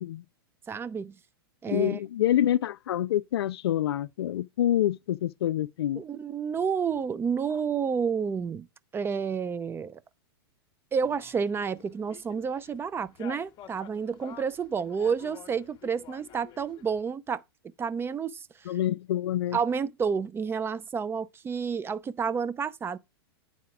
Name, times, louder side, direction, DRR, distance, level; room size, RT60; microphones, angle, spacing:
voice 1, 0.7-1.2 1.6-2.0 6.0-8.7 8.9-10.0 10.9-17.4 17.8-18.7 19.5-23.0, right 6 dB, 15° right, 0.5 m, -30 dB
voice 2, 1.7-6.0 18.7-19.6, left 12 dB, 75° left, 0.4 m, -27 dB
sound 1, 11.0-17.0, left 10 dB, 35° left, 1.0 m, -50 dB
9.4 x 4.2 x 5.8 m
hypercardioid pair, 105°, 13 cm